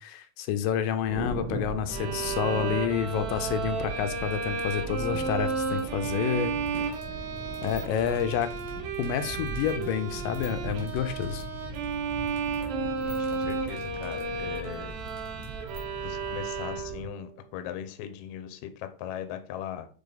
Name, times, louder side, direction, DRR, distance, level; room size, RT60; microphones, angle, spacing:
voice 1, 0.0-6.5 7.6-8.5 9.0-11.5, left 8 dB, 90° left, 9 dB, 2.3 m, -29 dB
Thunder, 1.0-17.0, right 2 dB, 50° right, 2.5 m, -40 dB
Bowed string instrument, 1.9-17.2, right 4 dB, 85° right, 2.6 m, -33 dB
sound 1, 5.7-15.8, left 1 dB, 10° right, 1.4 m, -48 dB
voice 2, 13.0-14.9 16.0-19.9, left 10 dB, 75° left, 8 dB, 1.8 m, -39 dB
7.1 x 3.4 x 3.8 m, 0.40 s
omnidirectional pair, 3.9 m